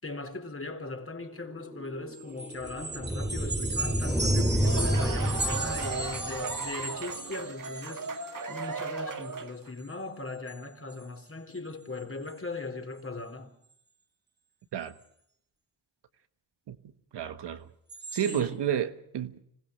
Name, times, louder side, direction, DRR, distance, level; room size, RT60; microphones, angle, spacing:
voice 1, 0.0-13.5 18.2-18.6, left 3 dB, 30° left, 3.9 m, -39 dB
sound 1, 1.2-6.8, equal, 5° right, 2.3 m, -30 dB
sound 2, 2.1-8.8 9.1-9.4 9.8-9.9 10.3-10.6 10.9-11.0 11.6-11.7 12.0-12.3 17.9-18.4, right 2 dB, 25° right, 2.1 m, -37 dB
sound 3, 4.4-9.7, right 4 dB, 50° right, 2.0 m, -37 dB
voice 2, 17.1-17.7 18.1-19.4, right 9 dB, 80° right, 1.6 m, -31 dB
26.0 x 16.0 x 6.5 m
cardioid pair, 60°, 41 cm